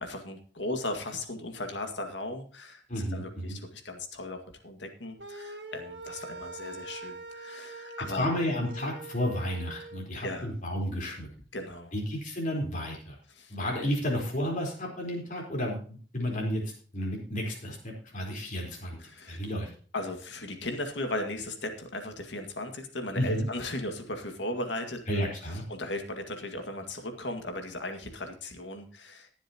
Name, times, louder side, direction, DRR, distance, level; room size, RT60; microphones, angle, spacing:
voice 1, 0.0-2.8 3.1-8.3 10.2-10.5 11.5-11.9 13.4-13.6 19.0-19.4 19.9-25.2 25.7-29.3, left 1 dB, 90° left, 6 dB, 2.0 m, -37 dB
voice 2, 2.9-3.6 8.2-11.3 11.9-13.2 13.5-16.6 16.9-19.0 19.3-19.7 23.1-23.5 25.1-25.6, equal, 45° left, -1 dB, 4.2 m, -32 dB
sound 1, 5.2-10.1, right 2 dB, 70° right, 1.7 m, -43 dB
21.0 x 7.4 x 2.9 m, 0.42 s
head